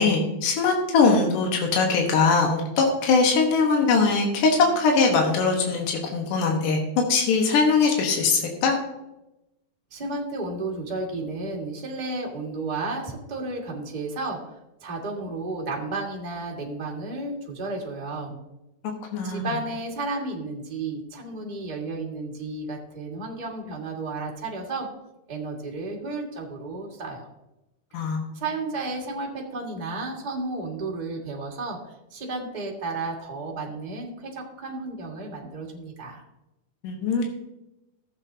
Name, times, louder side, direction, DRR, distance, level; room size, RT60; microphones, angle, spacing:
voice 1, 0.0-6.8 7.1-8.8 19.1-19.5 27.9-28.2 36.8-37.3, left 4 dB, 85° left, 1 dB, 2.8 m, -21 dB
voice 2, 9.9-14.4 14.8-18.4 19.2-24.9 25.3-27.3 27.9-36.2, right 3 dB, 20° right, -1 dB, 1.1 m, -33 dB
14.5 x 8.0 x 2.7 m, 0.91 s
omnidirectional pair, 3.6 m